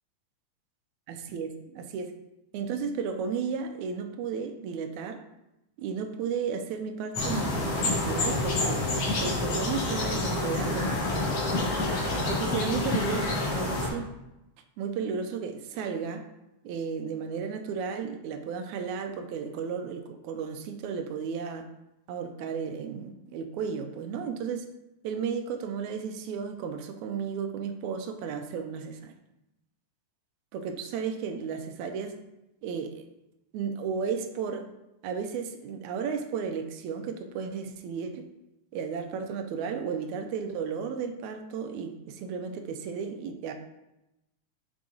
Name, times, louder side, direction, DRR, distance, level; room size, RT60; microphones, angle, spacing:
voice 1, 1.1-2.1 2.5-5.2 5.8-8.8 9.2-11.4 12.0-14.1 14.8-16.2 16.6-21.7 22.1-24.7 25.0-29.1 30.5-32.2 32.6-33.0 33.5-34.7 35.0-38.3 38.7-43.5, right 6 dB, 80° right, 7 dB, 1.9 m, -34 dB
sound 1, 7.1-13.9, left 2 dB, 60° left, 2.8 m, -28 dB
7.3 x 4.7 x 3.8 m, 0.93 s
omnidirectional pair, 3.4 m